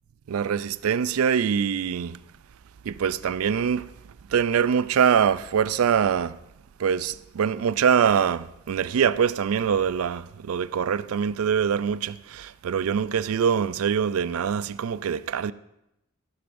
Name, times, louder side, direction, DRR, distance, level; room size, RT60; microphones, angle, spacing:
voice 1, 0.3-2.2 2.9-3.9 4.3-6.4 6.8-15.5, right 7 dB, 90° right, 0.4 m, -24 dB
14.5 x 11.5 x 2.6 m
head